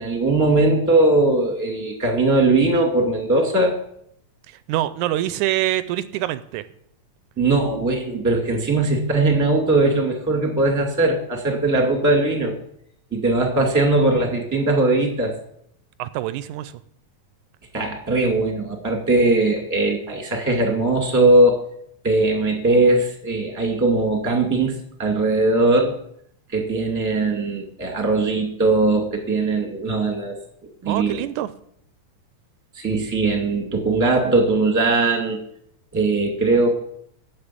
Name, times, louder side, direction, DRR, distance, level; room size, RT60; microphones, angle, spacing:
voice 1, 0.0-3.8 7.4-12.6 13.1-15.3 17.7-21.6 22.0-24.7 25.0-25.9 26.5-30.4 30.8-31.2 32.7-35.4 35.9-36.7, right 2 dB, 5° right, 3 dB, 1.5 m, -20 dB
voice 2, 4.5-6.6 16.0-16.8 30.9-31.5, right 14 dB, 80° right, 14 dB, 1.9 m, -25 dB
8.7 x 7.7 x 8.4 m, 0.71 s
omnidirectional pair, 3.6 m